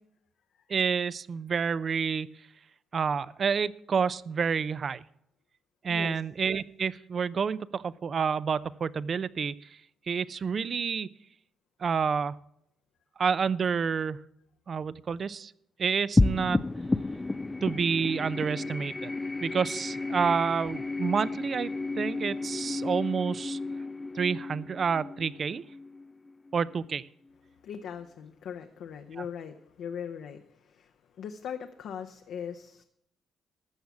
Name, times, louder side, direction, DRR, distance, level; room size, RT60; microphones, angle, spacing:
voice 1, 0.7-2.3 2.9-5.0 5.8-9.5 10.1-11.1 11.8-12.4 13.2-14.2 14.7-15.5 15.8-16.6 17.6-19.1 19.4-23.6 24.1-25.6 26.5-27.0, right 6 dB, 45° right, 18 dB, 0.4 m, -29 dB
voice 2, 5.9-6.2 27.6-32.8, left 8 dB, 75° left, 6 dB, 0.7 m, -40 dB
sound 1, 16.2-26.8, left 2 dB, 20° left, 0.3 m, -32 dB
13.0 x 7.0 x 6.0 m, 0.77 s
cardioid pair, 90°, 0 cm